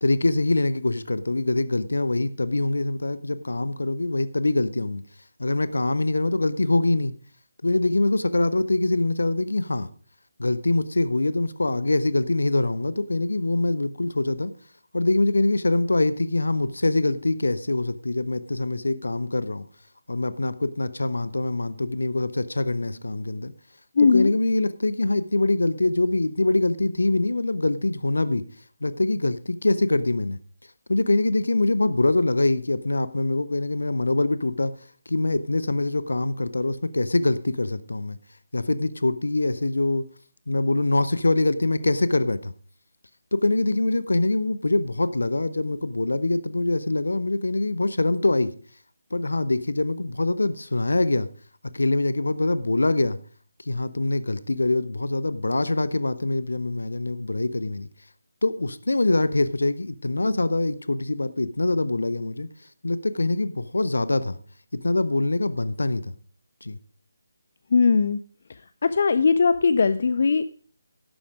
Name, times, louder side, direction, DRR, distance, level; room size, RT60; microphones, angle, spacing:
voice 1, 0.0-5.0 5.4-7.1 7.6-9.9 10.4-14.5 14.9-19.7 20.1-23.5 24.1-28.5 28.8-30.4 30.9-34.7 35.1-38.2 38.5-40.1 40.5-42.5 43.3-48.5 49.1-51.3 51.7-53.2 53.7-57.9 58.4-62.5 62.8-64.4 64.7-66.1 66.6-66.8, left 2 dB, 65° left, 0.8 m, -24 dB
voice 2, 24.0-24.3 67.7-68.2 68.8-70.4, left 5 dB, 45° left, 0.4 m, -19 dB
11.5 x 8.6 x 5.0 m
figure-of-eight pair, 150°, 0 cm